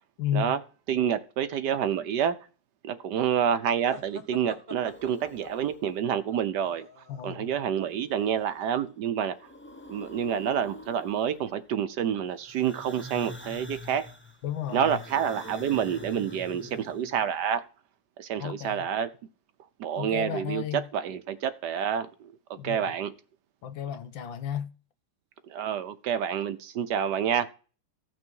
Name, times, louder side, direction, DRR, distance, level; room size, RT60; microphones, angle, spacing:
voice 1, 0.2-0.6 7.1-7.5 14.4-15.0 18.4-18.9 20.0-20.9 22.6-23.0 23.6-24.7, left 9 dB, 80° left, 1.7 m, -33 dB
voice 2, 0.9-2.4 2.8-6.9 7.2-9.4 9.9-14.0 14.7-17.6 18.2-19.1 19.8-20.6 20.9-22.3 22.6-23.1 25.5-27.5, right 8 dB, 65° right, 1.3 m, -28 dB
sound 1, 3.9-7.5, equal, 30° right, 1.0 m, -45 dB
sound 2, 4.8-6.1 7.8-8.8 9.1-11.7 12.4-17.3, left 1 dB, 15° left, 0.4 m, -46 dB
15.5 x 6.2 x 4.6 m
omnidirectional pair, 2.1 m